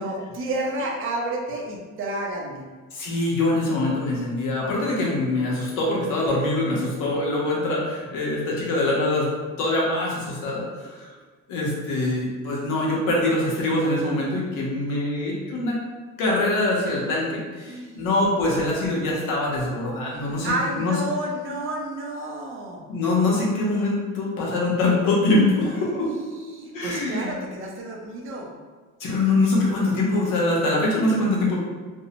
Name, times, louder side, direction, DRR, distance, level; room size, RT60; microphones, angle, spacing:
voice 1, 0.0-2.6 17.7-18.0 20.4-22.8 26.1-28.5, right 2 dB, 45° right, -1 dB, 0.4 m, -30 dB
voice 2, 2.9-9.3 9.6-11.1 11.5-15.8 16.2-21.0 22.9-26.1 26.7-27.4 29.0-31.6, left 2 dB, 85° left, -3 dB, 0.8 m, -24 dB
2.5 x 2.0 x 2.8 m, 1.4 s
cardioid pair, 170°, 31 cm